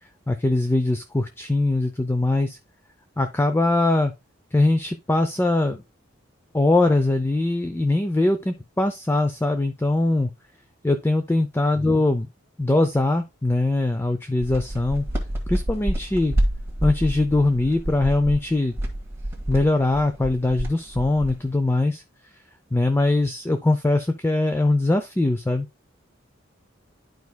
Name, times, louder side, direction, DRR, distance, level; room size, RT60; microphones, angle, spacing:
voice 1, 0.3-2.6 3.2-4.1 4.5-5.8 6.5-10.3 10.8-12.3 12.6-15.1 15.5-16.4 16.8-18.7 19.5-22.0 22.7-25.7, left 2 dB, 10° left, 7 dB, 0.4 m, -21 dB
sound 1, 14.4-21.5, right 1 dB, 15° right, 1.6 m, -28 dB
11.5 x 4.7 x 2.2 m, 0.23 s
head